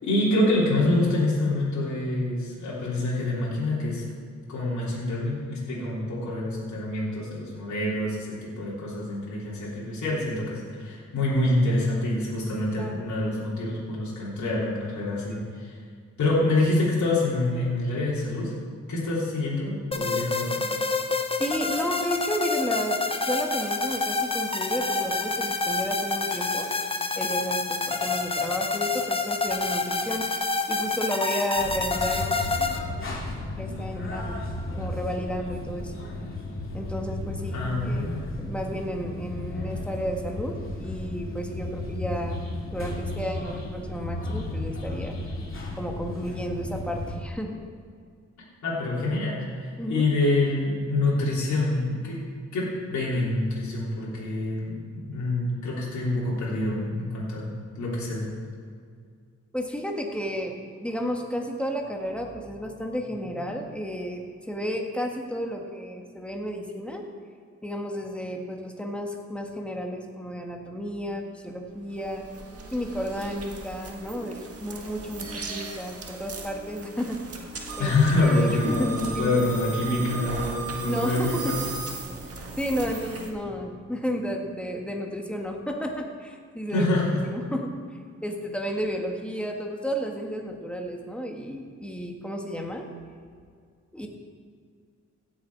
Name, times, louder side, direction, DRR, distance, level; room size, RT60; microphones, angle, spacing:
voice 1, 0.0-4.0 4.5-15.7 16.2-18.5 18.9-20.7 37.5-38.3 48.6-52.2 52.5-58.3 77.8-81.6 86.7-87.2, left 2 dB, 75° left, -6 dB, 3.3 m, -26 dB
voice 2, 12.7-13.2 15.3-15.4 21.4-26.7 27.2-30.3 30.7-32.3 33.6-34.4 34.8-35.9 36.7-38.1 38.4-42.4 42.7-45.1 45.7-47.6 49.8-50.1 59.5-60.5 60.8-67.0 67.6-72.2 72.7-77.2 77.8-79.4 80.8-81.6 82.6-86.9 87.2-87.8 88.2-92.9 93.9-94.1, equal, 5° left, 1 dB, 1.7 m, -32 dB
sound 1, 19.9-32.8, left 3 dB, 20° left, 0.9 m, -28 dB
sound 2, 31.6-47.2, left 2 dB, 45° left, 2.5 m, -34 dB
sound 3, 71.7-83.3, right 4 dB, 55° right, 1.7 m, -37 dB
16.5 x 7.3 x 4.8 m, 2.1 s
cardioid pair, 90°, 29 cm